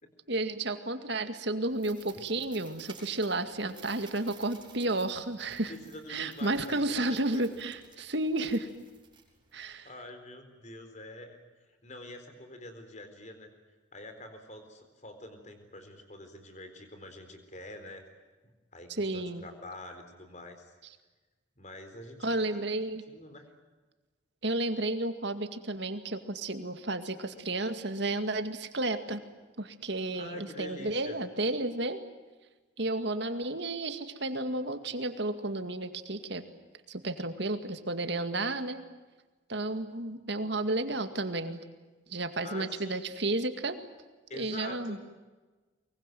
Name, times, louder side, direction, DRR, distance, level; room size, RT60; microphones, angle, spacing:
voice 1, 0.3-5.7 6.1-8.7 9.5-9.9 18.9-19.4 22.2-23.0 24.4-29.2 29.6-32.0 32.8-36.4 36.9-38.8 39.5-41.6 42.1-43.8 44.3-45.0, right 2 dB, 60° right, 8 dB, 2.1 m, -32 dB
sound 1, 1.7-9.7, right 6 dB, 25° right, 6.7 m, -55 dB
voice 2, 5.7-7.4 9.5-11.4 11.8-13.5 13.9-18.1 18.7-20.7 21.6-22.6 23.1-23.4 30.1-31.2 42.4-43.1 44.3-45.0, left 1 dB, 35° left, 7 dB, 4.1 m, -46 dB
24.0 x 23.0 x 9.3 m, 1.3 s
head